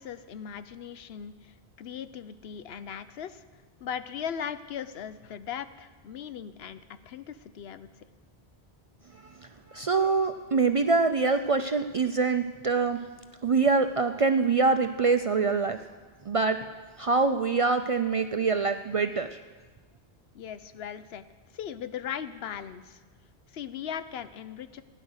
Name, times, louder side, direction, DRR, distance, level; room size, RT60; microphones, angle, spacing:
voice 1, 0.0-3.4 3.8-7.9 20.3-21.2 21.5-23.0 23.5-24.8, left 8 dB, 75° left, 12 dB, 0.9 m, -38 dB
voice 2, 9.1-13.0 13.4-15.8 16.3-16.6 17.0-19.4, right 4 dB, 45° right, 8 dB, 0.4 m, -25 dB
16.0 x 10.0 x 6.4 m, 1.3 s
omnidirectional pair, 1.1 m